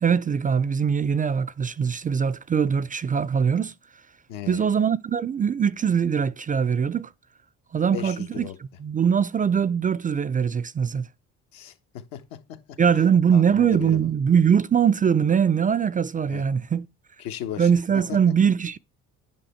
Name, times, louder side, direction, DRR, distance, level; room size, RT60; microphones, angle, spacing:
voice 1, 0.0-3.7 4.5-7.1 7.7-11.1 12.8-16.9 17.6-18.8, right 7 dB, 25° right, 0.4 m, -22 dB
voice 2, 4.3-4.7 7.9-8.6 11.5-11.7 12.1-13.1 13.3-14.1 16.3-16.4 17.2-18.2, left 10 dB, 80° left, 1.3 m, -36 dB
9.3 x 5.4 x 4.3 m
supercardioid pair, 75°, 35 cm